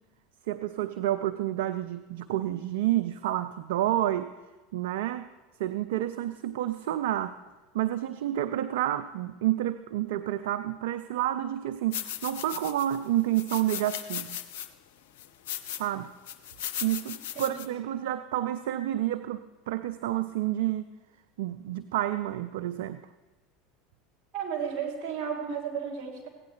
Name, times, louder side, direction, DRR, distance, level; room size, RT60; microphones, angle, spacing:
voice 1, 0.5-4.3 4.7-5.3 5.6-7.4 7.7-14.4 15.8-16.1 16.8-20.9 21.4-23.0, right 13 dB, 70° right, 11 dB, 0.3 m, -29 dB
sound 1, 11.9-13.0 13.3-14.7 15.2-15.9 16.3-17.7, left 10 dB, 65° left, 0.5 m, -37 dB
voice 2, 17.3-17.7 24.3-26.3, right 7 dB, 50° right, -2 dB, 3.0 m, -33 dB
16.0 x 9.3 x 3.2 m, 1.2 s
hypercardioid pair, 80°, 0 cm